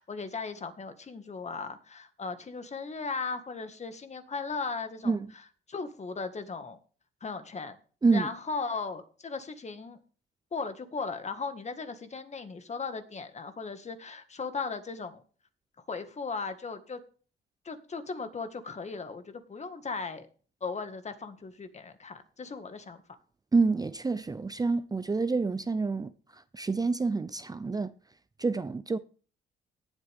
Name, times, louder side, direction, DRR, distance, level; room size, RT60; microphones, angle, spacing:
voice 1, 0.0-5.2 5.7-6.8 7.2-7.8 8.1-10.0 10.5-15.2 15.9-17.0 17.7-20.3 20.6-23.0, left 4 dB, 35° left, 1.8 m, -37 dB
voice 2, 23.5-27.9 28.4-29.0, right 4 dB, 20° right, 0.6 m, -28 dB
17.5 x 8.1 x 3.6 m
cardioid pair, 90°, 20 cm